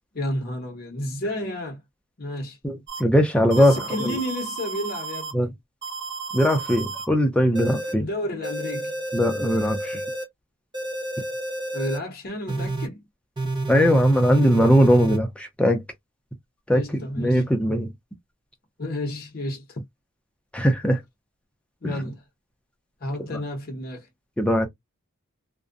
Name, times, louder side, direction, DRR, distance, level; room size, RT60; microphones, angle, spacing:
voice 1, 0.1-1.8 2.2-2.6 3.5-5.5 8.0-9.0 11.7-13.0 16.7-17.4 18.8-19.8 21.8-22.2 23.0-24.1, left 1 dB, 45° left, 0.7 m, -31 dB
voice 2, 2.6-4.2 5.3-5.5 6.3-8.1 9.1-10.0 13.7-15.8 16.7-17.9 20.5-21.0 21.8-21.9 24.4-24.7, equal, 5° left, 0.4 m, -20 dB
sound 1, 2.9-3.0 3.5-5.3 5.8-7.1 7.6-7.9 8.4-10.2 10.7-12.0 12.5-12.9 13.4-15.2, right 2 dB, 20° right, 0.8 m, -30 dB
2.5 x 2.1 x 2.4 m
head